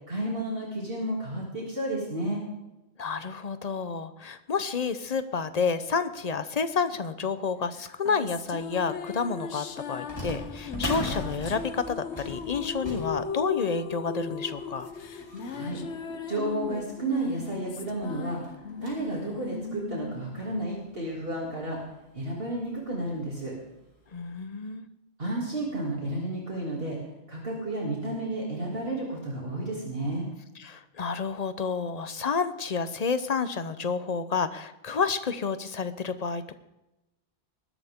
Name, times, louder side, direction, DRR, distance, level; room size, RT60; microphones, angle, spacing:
voice 1, 0.1-2.4 15.5-15.8 16.3-18.4 18.8-21.8 22.1-23.5 25.2-27.0 27.3-30.3, right 1 dB, 60° right, -3 dB, 3.1 m, -32 dB
voice 2, 3.0-14.9 24.1-24.9 30.6-36.6, left 5 dB, 40° left, 12 dB, 0.9 m, -30 dB
sound 1, 7.8-21.4, left 6 dB, 85° left, 1.2 m, -37 dB
sound 2, 10.1-17.0 17.6-17.7 17.9-18.0 18.4-19.2 19.7-19.8 20.6-20.7 21.1-21.2 22.6-22.8 23.2-23.3 24.0-24.1, equal, 25° left, 4.3 m, -39 dB
19.5 x 12.0 x 3.7 m, 0.95 s
omnidirectional pair, 1.1 m